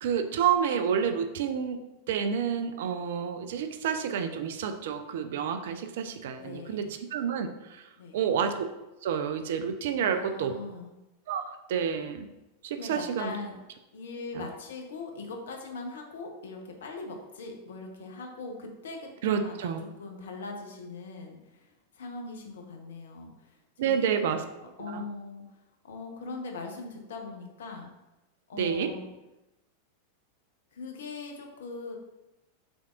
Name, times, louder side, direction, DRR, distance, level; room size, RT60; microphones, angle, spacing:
voice 1, 0.0-7.9 8.1-8.5 9.0-10.6 11.3-11.4 11.7-12.3 12.6-13.3 14.3-14.5 19.2-19.8 23.8-24.4 24.8-25.0 28.5-28.9, right 7 dB, 55° right, 7 dB, 0.4 m, -29 dB
voice 2, 6.4-6.9 8.0-8.2 10.0-10.9 12.8-13.6 13.9-23.6 23.8-24.3 24.8-25.6 25.8-27.9 28.5-29.1 30.7-32.0, left 3 dB, 60° left, 3 dB, 0.7 m, -41 dB
5.1 x 3.4 x 2.4 m, 0.99 s
figure-of-eight pair, 90°, 0 cm